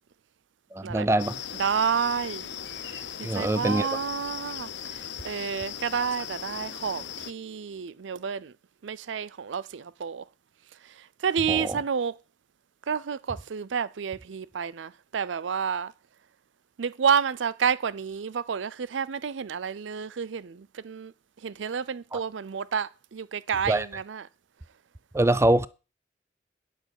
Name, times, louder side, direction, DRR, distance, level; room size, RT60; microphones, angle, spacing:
voice 1, 0.7-1.4 3.2-3.9 11.5-11.8 22.1-22.2 23.7-23.9 25.1-25.7, right 1 dB, 15° right, 0.4 m, -24 dB
sound 1, 1.2-7.3, left 9 dB, 70° left, 0.8 m, -38 dB
voice 2, 1.6-2.5 2.8-5.0 5.2-8.5 8.8-10.2 11.2-12.1 12.9-15.9 16.8-21.1 21.4-24.2, right 6 dB, 85° right, 0.5 m, -30 dB
9.2 x 5.4 x 8.1 m
head